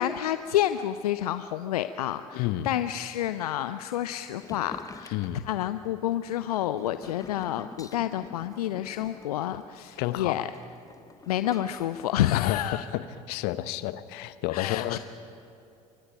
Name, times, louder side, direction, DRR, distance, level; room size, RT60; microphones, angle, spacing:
voice 1, 0.0-5.2 5.4-10.5 11.3-12.8 14.5-15.0, left 12 dB, 70° left, 12 dB, 0.6 m, -29 dB
voice 2, 2.3-2.7 5.1-5.5 10.0-10.4 12.3-13.0 13.3-15.0, left 14 dB, 55° left, 14 dB, 1.0 m, -30 dB
sound 1, 4.4-11.9, left 4 dB, 15° left, 1.0 m, -47 dB
28.0 x 24.0 x 5.2 m, 2.7 s
figure-of-eight pair, 65°, 20 cm